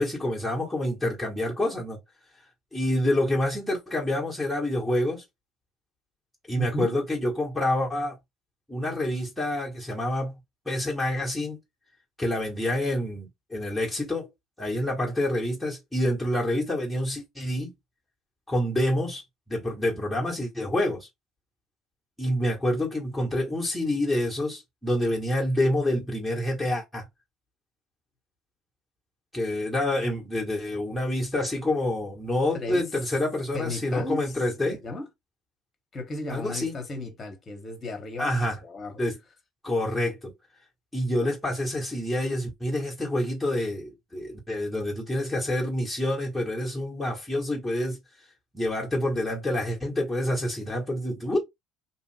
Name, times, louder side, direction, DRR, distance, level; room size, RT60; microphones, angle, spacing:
voice 1, 0.0-2.0 2.7-5.2 6.5-8.2 8.7-10.4 10.7-11.6 12.2-14.3 14.6-17.7 18.5-19.2 19.5-21.1 22.2-27.0 29.3-34.8 36.3-36.7 38.2-38.6 39.0-39.2 39.6-40.3 40.9-48.0 48.5-51.4, left 1 dB, 5° left, 1.2 m, -27 dB
voice 2, 6.6-7.0 32.5-32.8 33.5-34.3 34.8-35.1 35.9-38.4 38.6-39.0, left 2 dB, 30° left, 1.1 m, -34 dB
2.8 x 2.4 x 3.2 m
figure-of-eight pair, 60°, 0 cm